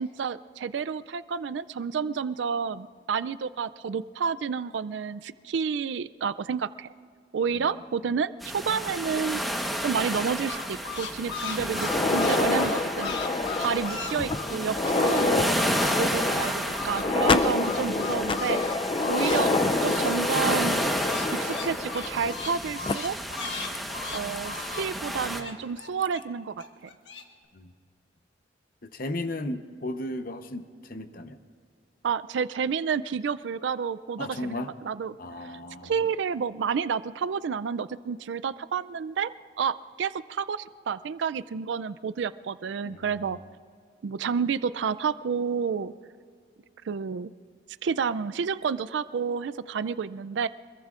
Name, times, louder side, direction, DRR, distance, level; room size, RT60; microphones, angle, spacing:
voice 1, 0.0-6.9 7.3-9.4 9.8-13.2 13.6-15.6 16.0-19.5 19.8-20.9 21.3-23.2 24.1-26.6 32.0-35.2 35.4-35.5 35.8-39.3 39.6-43.4 44.0-45.9 46.9-47.3 47.8-50.5, right 6 dB, 75° right, 14 dB, 0.4 m, -30 dB
voice 2, 7.5-8.1 27.5-27.7 28.8-31.4 34.2-34.7 35.2-36.1 42.8-43.4, left 1 dB, 50° left, 9 dB, 0.9 m, -36 dB
sound 1, 8.4-25.4, equal, ahead, 1.1 m, -31 dB
sound 2, 10.4-15.3 15.5-19.5 19.7-26.2 26.6-27.2, left 4 dB, 70° left, 1.4 m, -37 dB
sound 3, 11.7-22.5 22.8-22.9 23.7-23.8 24.4-24.5 25.8-26.1, left 3 dB, 30° left, 0.4 m, -28 dB
26.0 x 21.5 x 2.5 m, 2.2 s
head